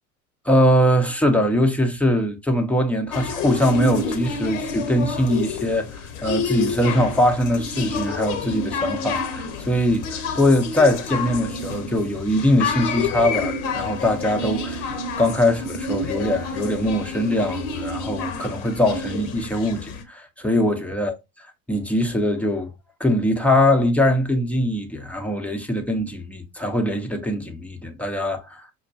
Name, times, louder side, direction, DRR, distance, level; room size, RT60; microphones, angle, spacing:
voice 1, 0.4-14.9 15.2-21.2 21.7-22.7 23.0-28.6, left 1 dB, 5° left, 0.6 m, -22 dB
sound 1, 3.1-20.0, left 4 dB, 55° left, 0.9 m, -29 dB
5.7 x 2.2 x 2.5 m
figure-of-eight pair, 80°, 44 cm